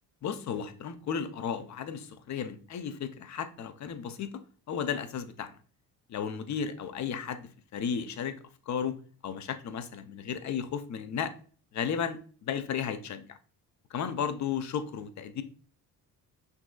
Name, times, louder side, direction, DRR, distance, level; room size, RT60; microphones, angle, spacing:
voice 1, 0.2-4.3 4.7-5.5 6.1-8.4 8.7-9.0 9.2-11.3 11.7-13.4 13.9-15.4, left 7 dB, 45° left, 0.6 m, -34 dB
6.0 x 2.7 x 2.3 m
cardioid pair, 80°, 39 cm